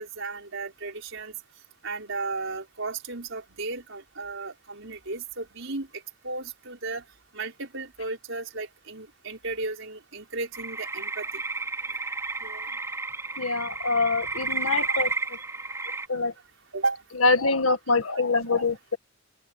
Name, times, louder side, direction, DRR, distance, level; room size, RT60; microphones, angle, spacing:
voice 1, 0.0-1.4 1.8-7.0 7.3-11.3 12.4-12.7 14.9-15.1 16.7-17.0 17.9-18.0, right 3 dB, 65° right, 6.0 m, -34 dB
sound 1, 10.5-16.1, right 3 dB, 15° right, 4.6 m, -32 dB
voice 2, 13.4-15.1 16.1-16.3 17.2-19.0, left 3 dB, 85° left, 2.0 m, -24 dB
open air
head